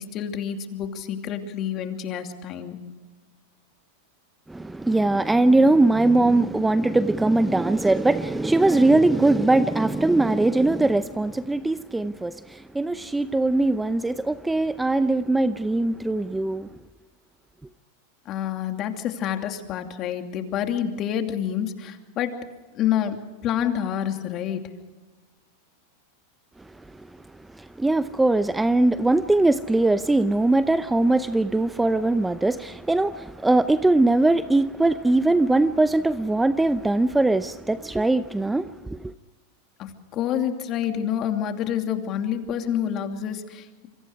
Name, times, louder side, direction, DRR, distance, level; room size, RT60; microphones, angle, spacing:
voice 1, 0.0-2.8 18.3-22.4 22.7-23.2 23.4-24.6 39.8-43.9, left 9 dB, 40° left, 2.8 m, -28 dB
voice 2, 4.5-16.7 27.6-39.1, right 2 dB, 10° right, 0.7 m, -21 dB
27.5 x 24.5 x 4.8 m
hypercardioid pair, 110°, 0 cm